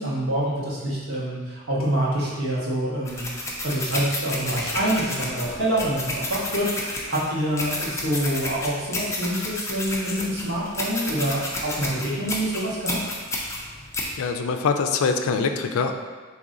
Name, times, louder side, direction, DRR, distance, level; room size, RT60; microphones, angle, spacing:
voice 1, 0.0-3.2 3.6-13.0, right 1 dB, 75° right, -6 dB, 1.3 m, -26 dB
sound 1, 3.1-14.1, left 1 dB, 15° left, 0.5 m, -31 dB
voice 2, 14.2-15.9, left 5 dB, 80° left, 6 dB, 0.4 m, -23 dB
4.1 x 3.0 x 3.7 m, 1.4 s
head